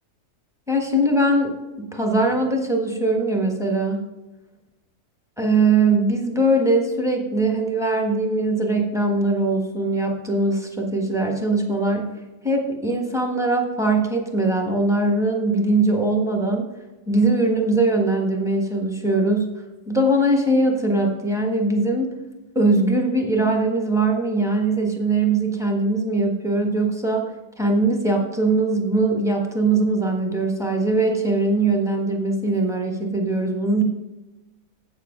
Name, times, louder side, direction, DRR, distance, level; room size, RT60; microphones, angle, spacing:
voice 1, 0.7-4.0 5.4-12.1 12.4-16.7 17.1-19.5 19.9-22.1 22.5-27.3 27.6-33.8, right 2 dB, ahead, 1 dB, 1.2 m, -21 dB
8.3 x 7.2 x 5.0 m, 1.1 s
omnidirectional pair, 1.7 m